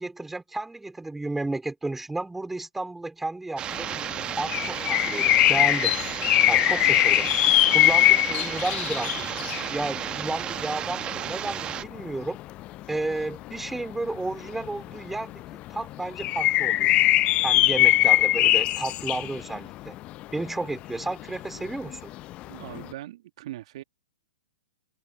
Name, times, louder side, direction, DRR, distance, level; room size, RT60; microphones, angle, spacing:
voice 1, 0.0-3.9 4.4-5.9 6.5-7.3 7.7-9.3 9.7-12.4 12.9-15.4 15.7-16.9 17.4-20.0 20.3-22.1, right 2 dB, 5° right, 3.9 m, -32 dB
sound 1, 3.6-11.8, right 10 dB, 25° right, 1.0 m, -33 dB
sound 2, 3.7-22.8, left 16 dB, 30° left, 0.5 m, -22 dB
voice 2, 22.4-23.8, right 14 dB, 55° right, 2.0 m, -40 dB
hypercardioid pair, 115°, 4 cm